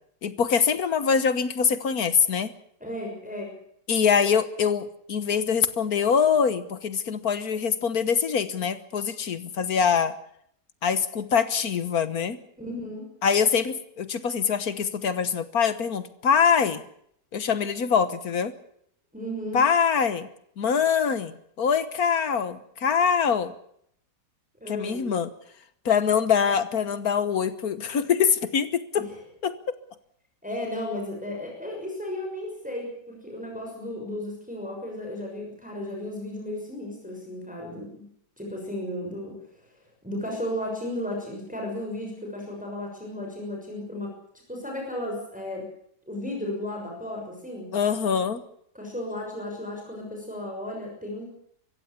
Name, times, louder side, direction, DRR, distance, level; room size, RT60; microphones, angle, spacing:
voice 1, 0.2-2.5 3.9-10.1 10.8-12.4 13.2-16.8 17.3-18.5 19.5-20.3 20.6-23.5 24.7-25.3 25.9-29.1 29.4-29.6 47.7-48.4, left 6 dB, 65° left, 13 dB, 1.6 m, -24 dB
voice 2, 2.8-3.5 12.6-13.1 19.1-19.6 24.6-25.1 28.9-29.0 30.4-38.0 38.4-39.4 40.0-45.7 46.1-47.7 48.7-51.2, left 1 dB, 5° right, -1 dB, 6.2 m, -34 dB
24.0 x 15.5 x 8.4 m, 0.70 s
omnidirectional pair, 1.8 m